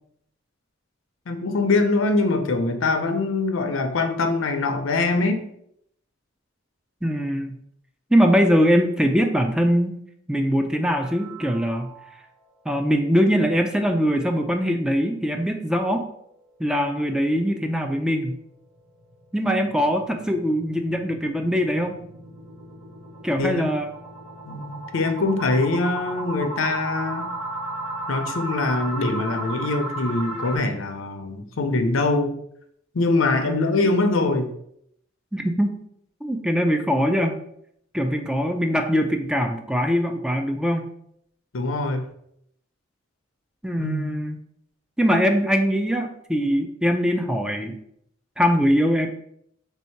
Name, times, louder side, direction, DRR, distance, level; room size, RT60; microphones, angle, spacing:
voice 1, 1.3-5.5 23.4-23.7 24.5-27.3 28.1-32.4 32.9-34.5 41.5-42.1 43.8-44.1, left 3 dB, 75° left, 7 dB, 0.6 m, -23 dB
voice 2, 7.0-7.6 8.1-10.0 10.3-11.9 12.7-16.1 16.6-18.4 19.3-22.0 23.2-23.9 33.4-33.8 35.3-35.8 36.2-37.4 37.9-40.9 43.6-44.4 45.0-47.8 48.4-49.1, equal, 5° right, 4 dB, 0.3 m, -22 dB
sound 1, 10.9-12.4 12.8-12.9 13.3-13.4 13.8-13.9 18.8-30.6, right 2 dB, 80° right, 1.3 m, -35 dB
3.5 x 2.7 x 4.4 m, 0.72 s
head